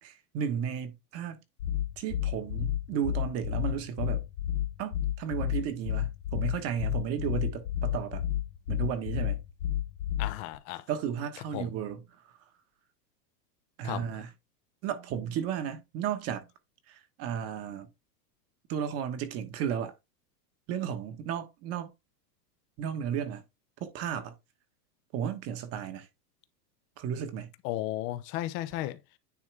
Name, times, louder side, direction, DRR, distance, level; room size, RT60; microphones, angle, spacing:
voice 1, 0.0-1.4 2.0-4.2 4.8-8.2 8.7-9.4 10.9-12.0 13.8-14.3 14.8-16.5 16.9-17.9 18.7-19.9 20.7-21.9 22.8-23.4 23.8-24.3 25.1-26.1 27.0-27.5, right 8 dB, 30° right, 1.2 m, -34 dB
sound 1, 1.6-10.6, left 12 dB, 85° left, 1.2 m, -30 dB
voice 2, 10.2-10.8 11.5-11.7 13.8-14.0 27.6-29.0, left 15 dB, 25° left, 0.6 m, -34 dB
9.6 x 3.7 x 3.4 m
supercardioid pair, 150°, 47 cm